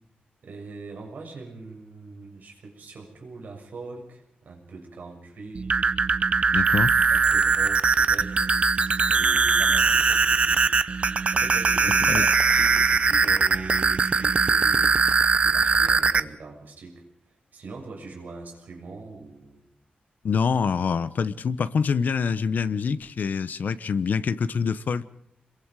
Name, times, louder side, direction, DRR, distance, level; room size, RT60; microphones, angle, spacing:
voice 1, 0.4-5.7 7.1-8.5 9.1-10.6 11.3-17.0 17.5-19.6, right 3 dB, 60° right, 6.9 m, -42 dB
sound 1, 5.5-16.2, right 5 dB, 35° right, 0.7 m, -21 dB
voice 2, 6.5-6.9 12.0-12.3 20.2-25.1, left 6 dB, 60° left, 1.0 m, -25 dB
27.5 x 22.5 x 4.8 m
wide cardioid pair, 170°, 3 cm